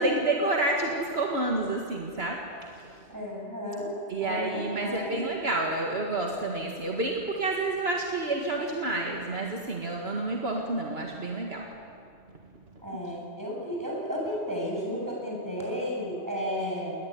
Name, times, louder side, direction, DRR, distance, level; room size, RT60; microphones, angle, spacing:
voice 1, 0.0-3.1 4.1-11.7 12.5-12.6, right 2 dB, 60° right, 0 dB, 2.1 m, -29 dB
voice 2, 3.1-5.1 12.8-17.0, equal, 15° right, -3 dB, 7.8 m, -33 dB
21.0 x 20.0 x 9.5 m, 2.4 s
omnidirectional pair, 1.2 m